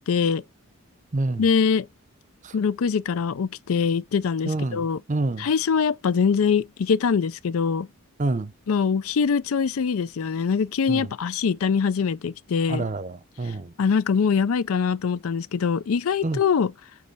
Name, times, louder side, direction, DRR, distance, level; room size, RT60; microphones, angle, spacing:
voice 1, 0.1-0.4 1.4-1.9 2.5-5.0 5.4-7.9 8.7-12.9 13.8-16.7, left 6 dB, 75° left, 0.4 m, -23 dB
voice 2, 4.5-5.5 8.2-8.5 10.9-11.1 12.7-13.7 16.2-16.4, right 2 dB, 35° right, 0.6 m, -27 dB
8.4 x 3.2 x 5.4 m
head